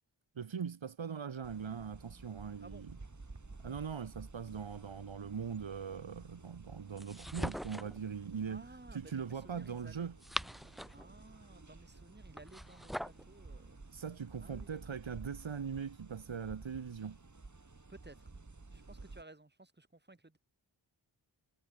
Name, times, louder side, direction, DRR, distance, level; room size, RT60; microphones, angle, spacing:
voice 1, 0.3-2.9 3.6-8.6 8.9-10.1 13.9-17.2, right 7 dB, 80° right, 2.8 m, -41 dB
sound 1, 1.4-19.2, right 3 dB, 40° right, 6.8 m, -53 dB
sound 2, 7.0-8.0 10.0-11.1 12.3-13.2, equal, ahead, 0.6 m, -41 dB
voice 2, 8.5-10.1 10.9-13.8 14.4-15.0 17.9-18.3 18.7-20.4, right 2 dB, 20° right, 4.2 m, -56 dB
cardioid pair, 60°, 45 cm